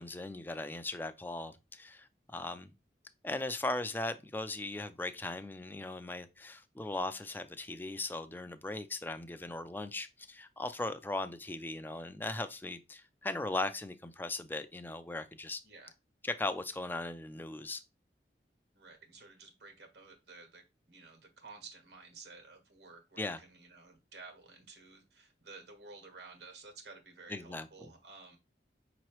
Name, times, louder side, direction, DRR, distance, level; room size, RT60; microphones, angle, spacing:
voice 1, 0.0-2.7 3.2-15.6 16.2-17.8 23.2-23.4 27.3-27.9, left 2 dB, 10° left, 0.4 m, -38 dB
voice 2, 18.7-28.4, right 4 dB, 70° right, 1.5 m, -53 dB
5.5 x 3.0 x 3.0 m
head